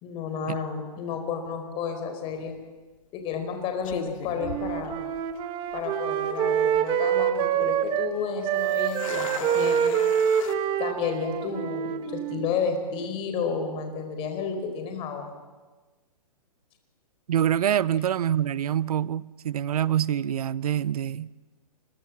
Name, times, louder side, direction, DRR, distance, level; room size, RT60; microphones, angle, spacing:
voice 1, 0.0-2.6 3.1-5.0 5.7-10.0 10.8-15.4, left 5 dB, 25° left, 4.6 m, -31 dB
sound 1, 2.3-2.6 3.3-3.5 3.8-5.4 5.7-5.8 6.4-6.8 8.5-10.6, left 8 dB, 55° left, 2.4 m, -38 dB
Wind instrument woodwind instrument, 4.4-8.1 8.4-12.5, right 9 dB, 25° right, 1.6 m, -26 dB
voice 2, 17.3-21.3, right 10 dB, 65° right, 0.8 m, -25 dB
29.0 x 22.5 x 7.4 m
hypercardioid pair, 145°, 20 cm